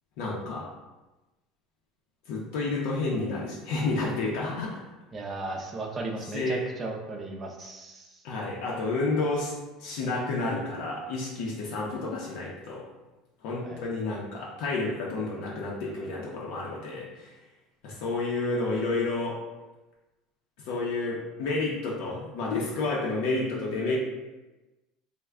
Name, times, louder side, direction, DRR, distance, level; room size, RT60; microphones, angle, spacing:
voice 1, 0.2-0.6 2.3-4.8 6.3-6.6 8.2-9.5 9.8-12.8 13.4-17.4 17.8-19.4 20.6-24.0, left 3 dB, 65° left, -3 dB, 0.6 m, -30 dB
voice 2, 5.1-8.2 13.6-13.8, right 2 dB, 20° right, 1 dB, 0.4 m, -36 dB
3.2 x 2.1 x 3.5 m, 1.1 s
cardioid pair, 170°, 0 cm